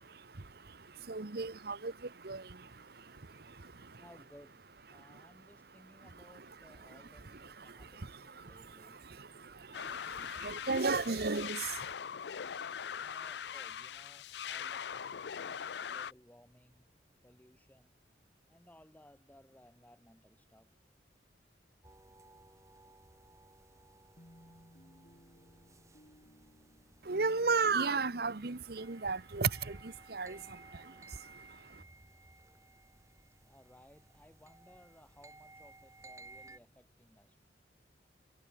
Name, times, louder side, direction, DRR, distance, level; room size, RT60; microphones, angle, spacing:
voice 1, 1.1-1.9 2.3-2.4 10.4-11.6 27.1-29.5 30.1-30.4, right 4 dB, 55° right, 1.0 m, -32 dB
voice 2, 4.0-4.6 4.9-9.0 13.0-16.9 17.2-17.9 18.5-20.7 33.4-37.4, equal, 10° left, 7.5 m, -61 dB
sound 1, 9.7-16.1, left 8 dB, 65° left, 0.5 m, -41 dB
sound 2, 21.8-36.6, right 2 dB, 15° right, 1.8 m, -58 dB
sound 3, 24.2-28.5, equal, 40° left, 4.0 m, -60 dB
head